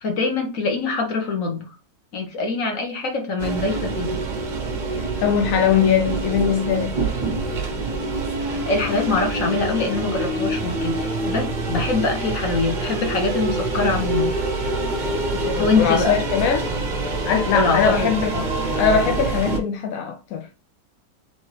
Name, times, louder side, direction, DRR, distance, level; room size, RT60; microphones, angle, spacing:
voice 1, 0.0-1.7 2.1-4.2 8.6-14.3 15.6-16.1 17.5-18.4, left 3 dB, 50° left, 1.5 m, -24 dB
sound 1, 3.4-19.6, right 2 dB, 40° right, 0.7 m, -26 dB
voice 2, 5.0-7.0 15.3-16.7 17.3-18.3 18.8-20.5, left 7 dB, 70° left, 0.8 m, -21 dB
4.1 x 3.5 x 3.3 m
omnidirectional pair, 1.8 m